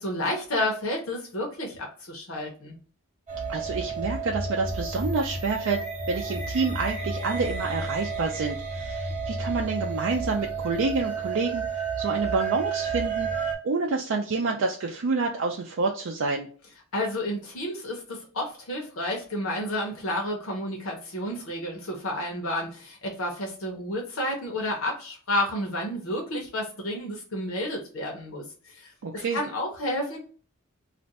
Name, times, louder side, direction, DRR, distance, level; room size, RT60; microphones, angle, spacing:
voice 1, 0.0-2.8 16.9-28.4 28.7-30.2, left 1 dB, 80° left, 0 dB, 0.8 m, -31 dB
sound 1, 3.3-13.5, right 4 dB, 35° right, 0.7 m, -31 dB
voice 2, 3.5-13.3 13.6-16.5 29.0-29.4, right 4 dB, 65° right, 1 dB, 0.4 m, -28 dB
2.5 x 2.2 x 4.0 m, 0.41 s
head